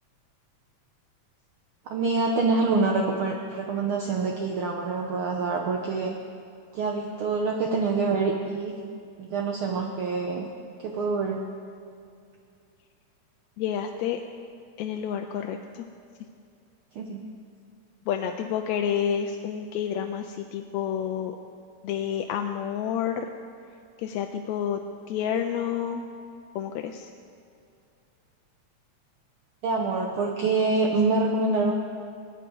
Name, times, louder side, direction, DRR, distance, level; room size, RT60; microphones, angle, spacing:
voice 1, 1.9-6.1 6.7-8.7 9.2-10.5 10.8-11.4 16.9-17.2 29.6-31.7, right 3 dB, 65° right, 1 dB, 1.3 m, -26 dB
voice 2, 13.6-14.2 14.8-15.9 18.1-21.3 21.8-23.3 24.0-24.8 25.1-26.0 26.6-27.1, left 9 dB, 80° left, 4 dB, 1.8 m, -29 dB
19.0 x 9.3 x 4.6 m, 2.4 s
omnidirectional pair, 3.3 m